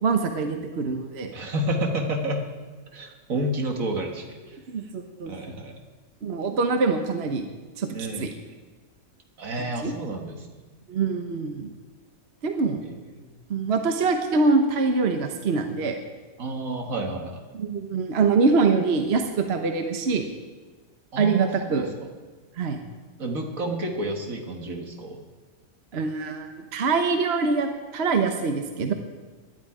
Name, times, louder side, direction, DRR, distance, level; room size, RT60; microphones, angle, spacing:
voice 1, 0.0-1.3 4.7-5.3 6.2-7.5 7.8-7.9 8.2-8.3 9.6-9.9 10.9-11.7 12.4-12.8 13.5-16.0 17.5-20.3 21.2-21.9 22.6-22.8 25.9-28.9, right 4 dB, 50° right, 5 dB, 1.2 m, -24 dB
voice 2, 1.3-2.5 2.9-4.6 5.3-5.7 7.9-8.3 9.4-10.5 12.8-13.0 16.4-17.4 21.1-21.9 23.2-25.2, right 1 dB, 70° right, 3 dB, 2.1 m, -30 dB
19.0 x 11.0 x 4.9 m, 1.3 s
omnidirectional pair, 1.5 m